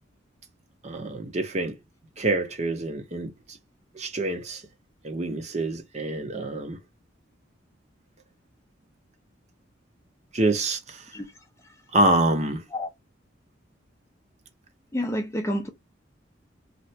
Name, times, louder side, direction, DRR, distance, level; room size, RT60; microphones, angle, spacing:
voice 1, 0.8-1.7 2.2-3.6 3.9-4.6 5.0-6.8 10.3-11.1 11.9-12.6, right 2 dB, 35° right, 0.7 m, -26 dB
voice 2, 14.9-15.7, equal, 15° left, 0.5 m, -28 dB
2.8 x 2.5 x 3.2 m
head